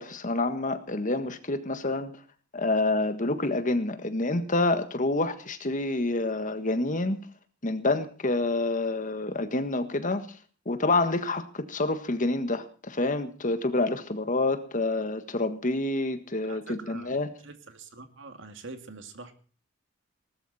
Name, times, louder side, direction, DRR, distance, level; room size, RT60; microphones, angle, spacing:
voice 1, 0.0-2.1 2.5-7.2 7.6-10.3 10.6-17.3, left 2 dB, 40° left, 9 dB, 1.6 m, -28 dB
voice 2, 16.4-17.1 17.4-19.3, right 3 dB, 65° right, 7 dB, 2.3 m, -44 dB
19.0 x 13.0 x 4.2 m, 0.40 s
head